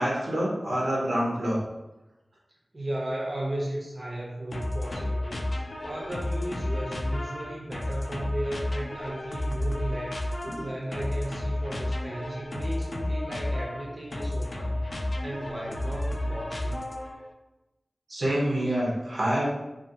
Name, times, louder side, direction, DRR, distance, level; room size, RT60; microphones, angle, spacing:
voice 1, 0.0-1.6 18.1-19.5, right 1 dB, 85° right, -5 dB, 0.8 m, -26 dB
voice 2, 2.7-16.9, right 1 dB, 45° right, -4 dB, 0.6 m, -35 dB
sound 1, 4.5-17.3, left 1 dB, 60° left, 0.3 m, -31 dB
2.5 x 2.5 x 2.7 m, 0.99 s
wide cardioid pair, 80°, 0 cm